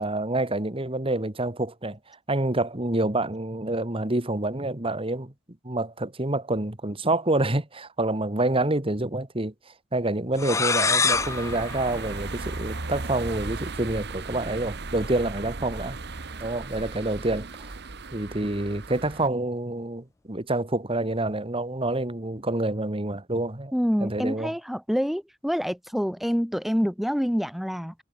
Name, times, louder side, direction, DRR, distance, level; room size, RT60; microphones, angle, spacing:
voice 1, 0.0-5.3 5.6-9.5 9.9-16.0 16.4-17.7 18.1-23.7 24.0-24.5, right 2 dB, 30° right, 2.1 m, -27 dB
sound 1, 10.4-13.0, left 4 dB, 15° left, 0.4 m, -27 dB
sound 2, 11.1-19.3, right 3 dB, 60° right, 1.3 m, -36 dB
voice 2, 23.7-27.9, equal, ahead, 1.7 m, -26 dB
head